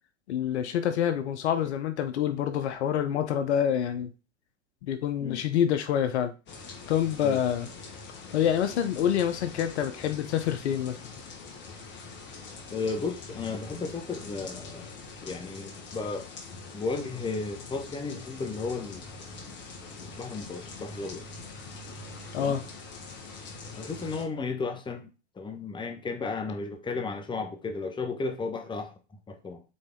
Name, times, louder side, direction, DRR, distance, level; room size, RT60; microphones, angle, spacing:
voice 1, 0.3-4.1 4.8-6.3 6.9-7.7 8.3-11.0 22.3-22.6, left 9 dB, 70° left, 1.0 m, -27 dB
sound 1, 6.5-24.2, left 4 dB, 30° left, 1.8 m, -44 dB
voice 2, 12.7-14.9 15.2-16.3 16.7-19.0 19.3-19.5 20.0-21.3 22.3-22.6 23.7-25.1 25.3-28.9 29.3-29.6, left 4 dB, 15° left, 1.2 m, -34 dB
7.9 x 3.9 x 3.8 m
hypercardioid pair, 110°, 35 cm